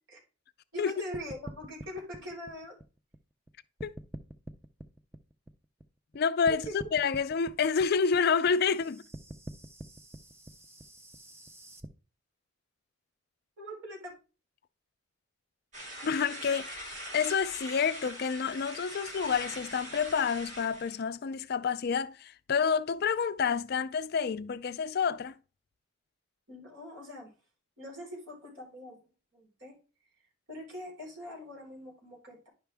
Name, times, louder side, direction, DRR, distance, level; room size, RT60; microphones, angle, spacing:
voice 1, 0.7-2.8 6.5-6.9 13.6-14.1 26.5-27.3 27.8-29.0 29.3-29.8 30.5-32.5, equal, 65° right, 4.2 m, -42 dB
sound 1, 1.1-3.5 3.8-6.2 6.5-11.9, right 1 dB, 10° right, 0.5 m, -46 dB
voice 2, 6.1-9.0 16.0-25.3, left 6 dB, 50° left, 0.4 m, -29 dB
sound 2, 15.7-21.0, right 1 dB, 35° right, 2.4 m, -42 dB
10.5 x 5.7 x 3.4 m
head